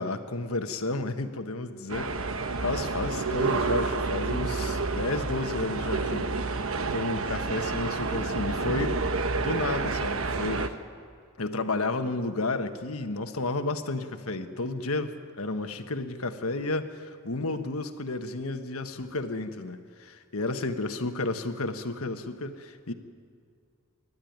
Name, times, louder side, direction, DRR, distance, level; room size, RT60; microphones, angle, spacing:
voice 1, 0.0-2.3 2.6-6.3 6.6-9.0 9.4-10.7 11.4-22.9, left 2 dB, 80° left, 7 dB, 1.3 m, -32 dB
sound 1, 1.9-10.7, right 3 dB, 70° right, 1.1 m, -29 dB
27.5 x 12.5 x 9.4 m, 2.2 s
head